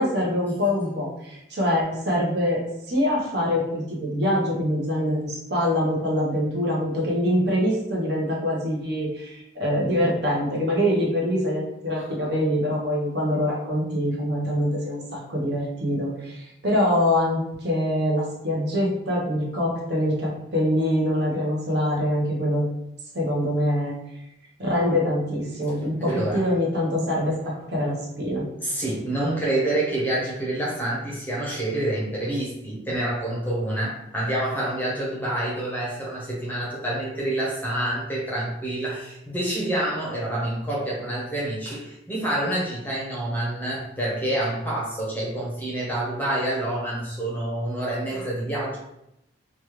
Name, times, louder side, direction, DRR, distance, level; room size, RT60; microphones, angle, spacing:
voice 1, 0.0-22.6 23.1-23.9 24.6-28.4, left 1 dB, 55° right, -3 dB, 0.9 m, -24 dB
voice 2, 26.0-26.4 28.6-48.8, right 1 dB, 10° left, -5 dB, 0.7 m, -27 dB
3.1 x 2.3 x 3.1 m, 0.84 s
head